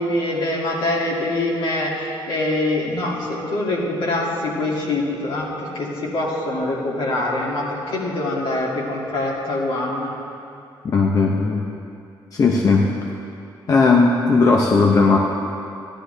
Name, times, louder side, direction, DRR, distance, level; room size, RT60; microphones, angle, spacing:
voice 1, 0.0-10.1, left 2 dB, 70° left, -4 dB, 2.5 m, -24 dB
voice 2, 10.8-11.6 12.3-12.9 13.7-15.2, left 4 dB, 40° left, 0 dB, 0.7 m, -16 dB
15.5 x 11.5 x 3.4 m, 2.6 s
wide cardioid pair, 170°, 9 cm